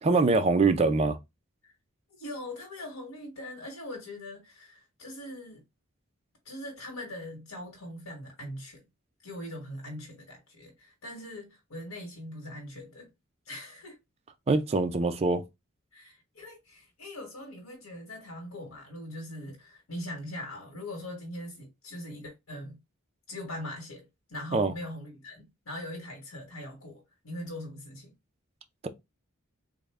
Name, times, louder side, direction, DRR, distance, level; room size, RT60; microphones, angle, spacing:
voice 1, 0.0-1.2 14.5-15.4 24.5-24.7, right 3 dB, 30° right, 0.4 m, -23 dB
voice 2, 2.1-5.6 6.4-8.8 9.2-13.1 13.4-14.0 15.9-22.8 23.3-28.1, left 1 dB, 80° left, 1.1 m, -41 dB
3.6 x 2.1 x 3.3 m
head